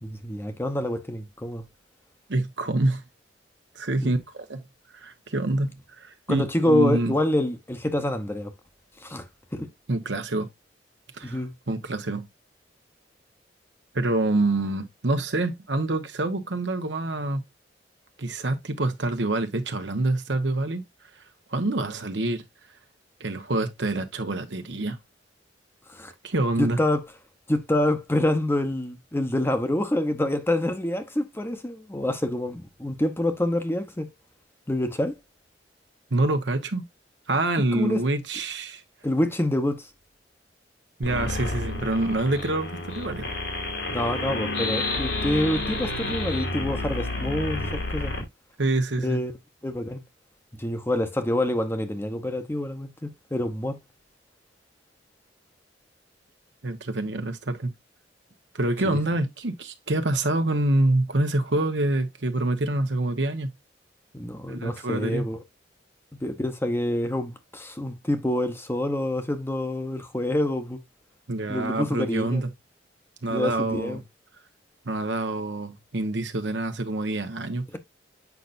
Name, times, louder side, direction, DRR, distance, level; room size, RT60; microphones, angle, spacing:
voice 1, 0.0-1.6 4.0-4.1 6.3-8.5 9.0-9.2 9.5-9.7 11.2-11.5 25.9-26.1 26.6-27.0 27.5-34.1 34.7-35.1 37.7-38.0 39.0-39.9 43.9-48.1 49.0-49.3 49.6-50.0 50.6-53.8 58.9-59.0 64.1-65.4 66.2-70.8 71.5-72.4 73.3-74.0, left 1 dB, 15° left, 0.9 m, -27 dB
voice 2, 2.3-3.0 3.7-4.6 4.9-5.7 6.0-7.1 9.9-10.5 11.1-11.4 11.7-12.3 13.9-17.4 18.2-20.8 21.5-22.4 23.2-25.0 26.2-26.8 36.1-36.8 37.3-38.8 41.0-43.3 48.6-49.2 56.6-57.7 58.5-63.5 64.5-65.3 71.3-72.5 73.2-74.0 74.8-77.7, right 2 dB, 70° right, 1.2 m, -26 dB
sound 1, 41.0-48.2, left 2 dB, 85° left, 3.1 m, -30 dB
8.2 x 5.6 x 2.6 m
head